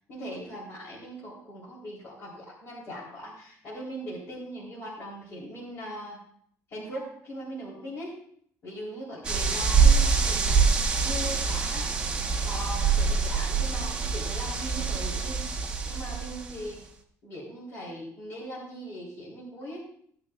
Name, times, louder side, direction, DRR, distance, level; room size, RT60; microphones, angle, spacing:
voice 1, 0.1-6.2 6.7-8.2 8.6-10.7 11.0-11.9 12.4-15.4 15.9-16.8 17.2-19.8, equal, 45° left, -6 dB, 3.6 m, -40 dB
sound 1, 9.2-16.7, right 5 dB, 15° right, 1.0 m, -25 dB
16.5 x 9.6 x 2.4 m, 0.63 s
cardioid pair, 170°, 6 cm